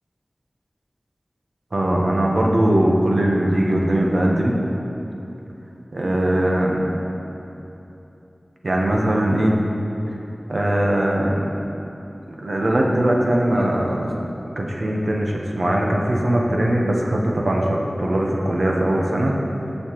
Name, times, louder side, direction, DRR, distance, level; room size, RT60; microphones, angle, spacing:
voice 1, 1.7-4.6 5.9-7.0 8.6-9.5 10.5-11.6 12.3-14.2 14.6-19.4, right 1 dB, 75° right, -1 dB, 1.0 m, -20 dB
15.0 x 5.6 x 3.1 m, 3.0 s
wide cardioid pair, 55°, 0 cm